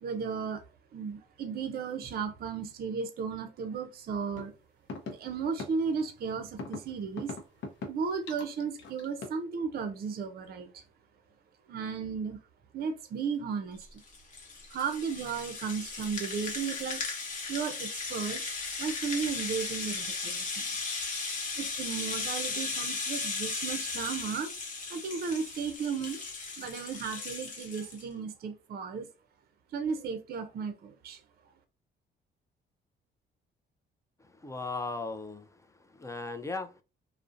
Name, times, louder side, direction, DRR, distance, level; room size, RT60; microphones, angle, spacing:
voice 1, 0.0-0.6 0.9-4.5 5.1-7.3 7.9-10.8 11.7-12.4 12.7-14.0 14.7-17.0 17.5-18.4 18.8-20.7 21.6-24.5 24.9-26.2 26.6-29.1 29.7-31.2, right 6 dB, 50° right, 0.5 m, -35 dB
sound 1, 4.4-4.5 4.9-5.1 5.6-5.7 6.6-6.8 7.2-7.9 8.3-9.4, left 3 dB, 70° left, 0.6 m, -38 dB
Rattle (instrument), 13.8-28.0, left 4 dB, 40° left, 0.9 m, -36 dB
voice 2, 34.2-36.8, left 3 dB, 15° left, 0.3 m, -38 dB
2.5 x 2.0 x 2.4 m
cardioid pair, 90°, 20 cm